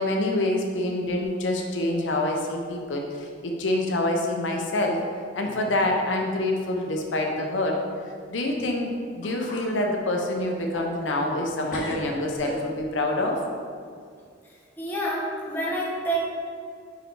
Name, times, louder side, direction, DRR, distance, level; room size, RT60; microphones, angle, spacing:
voice 1, 0.0-5.0 5.3-7.8 8.3-13.4, left 1 dB, 85° left, 1 dB, 0.8 m, -26 dB
sound 1, 1.1-2.0 2.2-2.7 3.1-3.2 4.1-4.2 4.9-5.0 5.5-5.9 6.1-6.2 8.8-8.9 9.2-9.7 10.2-11.4 11.7-13.0, left 1 dB, 45° left, 1.2 m, -40 dB
voice 2, 14.8-16.2, right 1 dB, 10° left, -6 dB, 1.3 m, -28 dB
5.1 x 5.0 x 4.6 m, 2.2 s
head